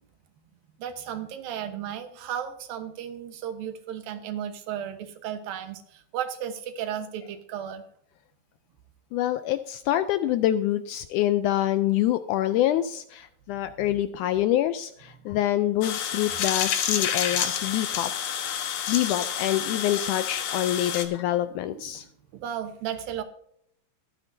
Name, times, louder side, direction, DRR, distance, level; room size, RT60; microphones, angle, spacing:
voice 1, 0.8-7.8 13.8-14.0 15.2-15.3 19.6-19.7 21.4-22.1 22.3-23.2, right 9 dB, 90° right, 8 dB, 2.9 m, -35 dB
voice 2, 9.1-18.1 18.4-18.5 18.9-22.1, left 13 dB, 85° left, 11 dB, 1.8 m, -26 dB
sound 1, 15.8-21.0, left 9 dB, 65° left, 2.4 m, -29 dB
23.0 x 8.8 x 2.7 m, 0.71 s
omnidirectional pair, 4.0 m